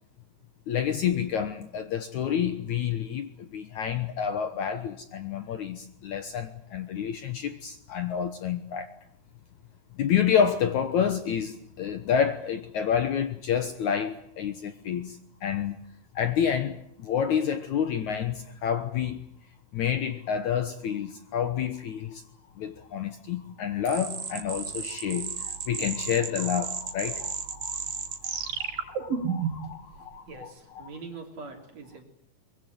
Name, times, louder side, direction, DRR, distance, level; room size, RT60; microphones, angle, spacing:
voice 1, 0.7-8.9 10.0-15.8 16.2-19.2 19.7-22.2 22.6-30.9, left 8 dB, 65° left, 2.1 m, -29 dB
sound 1, 23.9-29.7, right 7 dB, 70° right, 4.1 m, -33 dB
voice 2, 29.4-32.0, right 4 dB, 45° right, 4.2 m, -44 dB
24.0 x 22.0 x 9.3 m
omnidirectional pair, 4.4 m